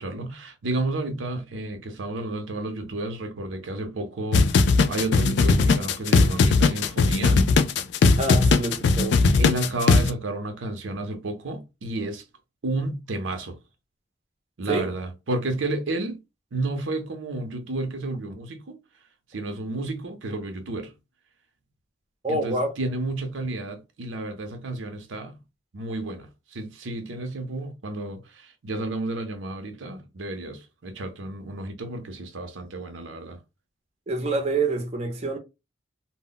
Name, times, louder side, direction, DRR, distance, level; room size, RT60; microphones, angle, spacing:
voice 1, 0.0-7.5 9.3-12.2 12.6-13.6 14.6-16.2 16.5-18.8 19.3-20.9 22.3-25.4 25.7-33.4, right 2 dB, 85° right, 0.6 m, -31 dB
sound 1, 4.3-10.1, left 4 dB, 65° left, 0.3 m, -19 dB
voice 2, 8.2-9.2 14.7-14.9 22.2-22.7 34.1-35.4, right 2 dB, 35° right, 0.5 m, -26 dB
2.1 x 2.0 x 3.7 m
head